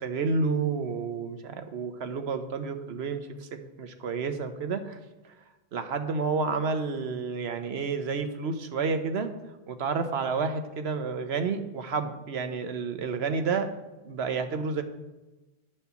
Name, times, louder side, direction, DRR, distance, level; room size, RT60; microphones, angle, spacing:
voice 1, 0.0-3.5 3.8-5.0 5.7-9.3 9.7-13.7 14.1-14.8, right 4 dB, 85° right, 8 dB, 1.1 m, -30 dB
9.9 x 4.3 x 6.9 m, 1.1 s
omnidirectional pair, 1.0 m